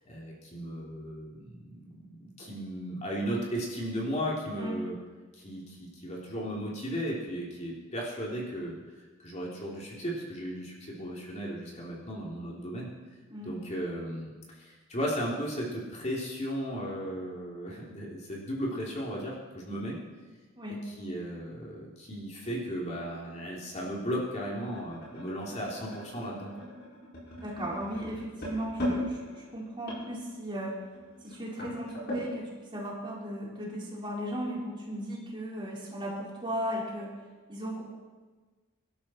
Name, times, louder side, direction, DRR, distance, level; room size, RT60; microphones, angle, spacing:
voice 1, 0.0-5.0 5.3-8.7 9.2-12.9 13.4-14.3 14.6-20.0 20.9-26.5, equal, 35° left, -4 dB, 3.2 m, -35 dB
voice 2, 4.6-4.9 13.3-13.6 20.6-20.8 27.4-30.8 31.2-37.1 37.5-37.9, equal, 25° right, -5 dB, 4.5 m, -36 dB
sound 1, 23.0-32.3, left 1 dB, 50° left, 5.5 m, -39 dB
24.0 x 12.5 x 4.4 m, 1.3 s
head